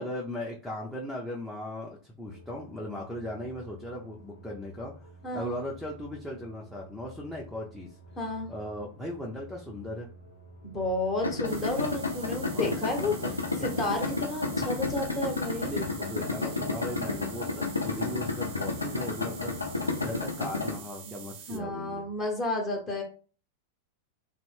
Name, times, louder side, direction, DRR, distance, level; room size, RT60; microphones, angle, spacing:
voice 1, 0.0-8.0 8.5-10.1 12.5-12.7 13.0-13.4 15.6-19.6 20.0-22.1, left 1 dB, 5° left, -4 dB, 0.5 m, -38 dB
sound 1, 2.3-20.2, left 1 dB, 65° left, 1.0 m, -50 dB
voice 2, 8.2-8.5 10.6-13.1 13.6-15.8 19.2-19.5 21.0-21.2 21.5-23.0, left 2 dB, 25° left, 0 dB, 1.0 m, -31 dB
Idling, 11.2-20.8, left 3 dB, 80° left, 0.5 m, -32 dB
sound 2, 11.4-21.6, right 7 dB, 50° right, 0.5 m, -47 dB
2.4 x 2.1 x 3.3 m, 0.39 s
figure-of-eight pair, 90°, 0 cm